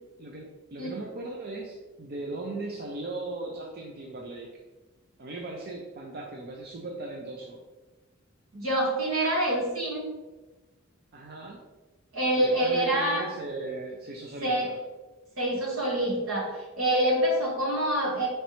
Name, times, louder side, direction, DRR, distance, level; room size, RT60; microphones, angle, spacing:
voice 1, 0.2-4.5 5.2-7.6 11.1-11.6 12.3-14.7, right 2 dB, 50° right, -1 dB, 0.5 m, -38 dB
voice 2, 8.5-10.1 12.1-13.3 14.4-14.7 15.4-16.5 16.8-18.3, right 1 dB, 80° right, -2 dB, 1.3 m, -26 dB
5.3 x 3.2 x 3.0 m, 1.2 s
head